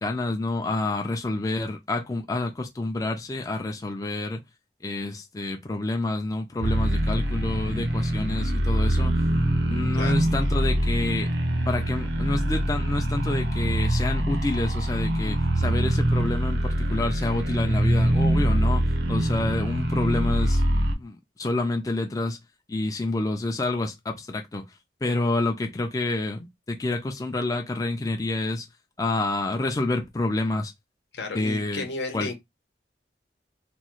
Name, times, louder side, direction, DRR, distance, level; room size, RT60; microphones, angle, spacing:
voice 1, 0.0-4.4 4.8-9.1 9.7-11.3 11.7-20.6 21.0-22.4 22.7-24.6 25.0-28.7 29.0-30.7 31.3-31.9 32.1-32.3, left 2 dB, 20° left, 0.4 m, -28 dB
sound 1, 6.6-21.0, right 1 dB, 85° right, 0.7 m, -24 dB
voice 2, 31.1-32.3, left 3 dB, 80° left, 0.8 m, -33 dB
3.0 x 2.3 x 3.0 m
head